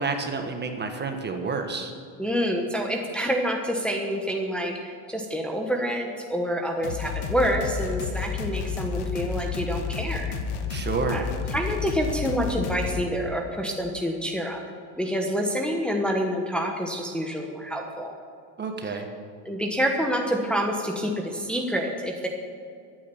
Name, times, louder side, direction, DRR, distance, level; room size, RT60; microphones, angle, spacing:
voice 1, 0.0-1.9 10.7-11.2 18.6-19.1, right 4 dB, 20° right, 5 dB, 1.3 m, -29 dB
voice 2, 2.2-10.3 11.1-11.3 11.5-14.6 15.0-18.1 18.8-19.0 19.4-22.3, equal, ahead, 1 dB, 1.2 m, -27 dB
sound 1, 6.8-13.0, left 5 dB, 55° left, 1.5 m, -31 dB
13.5 x 9.1 x 7.0 m, 2.3 s
supercardioid pair, 125°, 46 cm